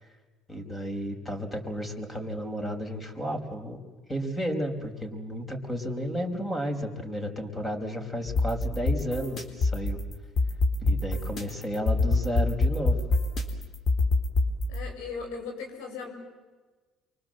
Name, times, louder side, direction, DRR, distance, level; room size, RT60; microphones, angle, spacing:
voice 1, 0.5-3.8 4.1-10.0 10.8-13.0, equal, 15° left, 3 dB, 5.2 m, -32 dB
sound 1, 8.3-14.8, left 2 dB, 45° left, 4.2 m, -26 dB
voice 2, 14.7-16.1, left 5 dB, 85° left, 3 dB, 6.7 m, -37 dB
29.5 x 24.5 x 7.8 m, 1.3 s
supercardioid pair, 85°, 0 cm